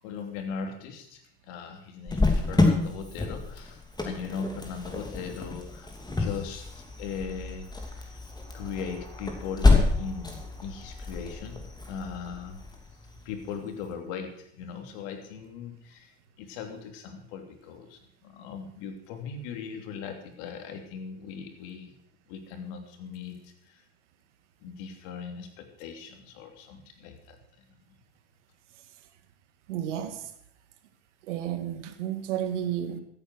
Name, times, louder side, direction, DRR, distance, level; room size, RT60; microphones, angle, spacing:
voice 1, 0.0-8.2 8.5-12.6 13.2-21.9 22.3-23.8 24.6-27.4, left 6 dB, 70° left, 5 dB, 3.0 m, -39 dB
Cricket, 2.1-13.5, left 3 dB, 10° left, 2.8 m, -28 dB
voice 2, 29.7-30.2 31.3-33.0, right 10 dB, 85° right, 9 dB, 1.9 m, -31 dB
15.0 x 8.9 x 6.3 m, 0.68 s
supercardioid pair, 100°, 35 cm